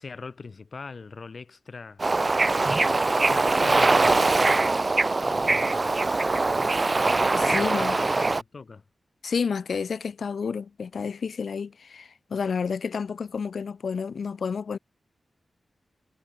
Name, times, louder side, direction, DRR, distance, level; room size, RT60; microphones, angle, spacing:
voice 1, 0.0-2.0 2.5-4.3 5.2-5.9 7.3-8.8, left 4 dB, 50° left, 7.9 m, -41 dB
Bird / Ocean, 2.0-8.4, right 3 dB, 30° right, 0.8 m, -22 dB
voice 2, 7.3-8.0 9.2-14.8, left 6 dB, 75° left, 5.2 m, -30 dB
wide cardioid pair, 110°, 0 cm